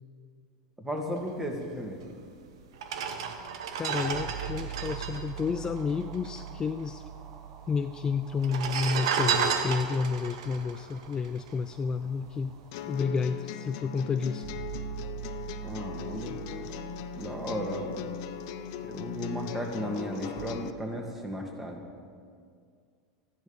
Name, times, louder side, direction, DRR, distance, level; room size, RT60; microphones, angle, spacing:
voice 1, 0.8-2.0 15.6-16.4 17.2-18.1 18.8-21.8, equal, 10° right, 1 dB, 2.1 m, -35 dB
sound 1, 2.1-2.2 2.7-6.4 6.7-6.8 7.0-7.7 8.3-11.8 12.3-12.5, right 7 dB, 75° right, 1.0 m, -32 dB
sound 2, 3.1-20.5, right 10 dB, 45° right, 1.2 m, -44 dB
voice 2, 3.8-7.0 7.7-12.6 12.9-14.5, left 5 dB, 25° left, 9 dB, 0.4 m, -30 dB
sound 3, 12.7-20.7, left 10 dB, 65° left, 0.7 m, -39 dB
13.5 x 10.5 x 5.4 m, 2.1 s
hypercardioid pair, 95°, 3 cm